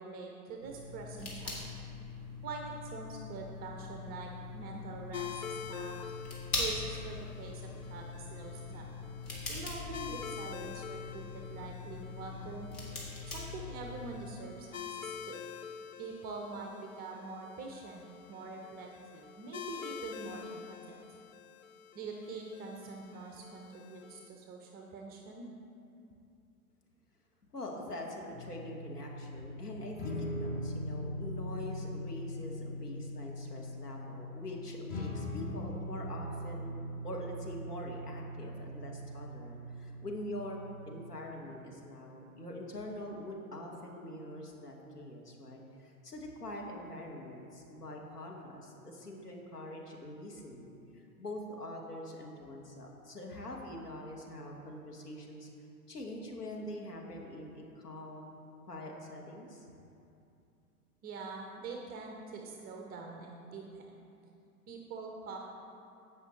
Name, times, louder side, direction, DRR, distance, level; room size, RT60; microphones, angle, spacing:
voice 1, 0.0-1.5 2.4-6.0 6.6-8.9 9.5-12.7 13.3-15.4 16.0-21.2 21.9-25.5 61.0-64.1 64.7-65.4, right 4 dB, 20° right, 1 dB, 0.6 m, -44 dB
sound 1, 0.6-14.1, left 3 dB, 35° left, 2.2 m, -42 dB
sound 2, 5.1-24.3, left 8 dB, 60° left, 0.6 m, -47 dB
voice 2, 27.5-36.7 37.0-40.6 40.9-55.5 55.9-58.3 58.7-59.6, left 1 dB, 85° left, 0 dB, 1.5 m, -44 dB
sound 3, 28.3-40.9, left 1 dB, 20° left, 0.9 m, -41 dB
16.0 x 5.5 x 3.2 m, 2.7 s
figure-of-eight pair, 100°, 46 cm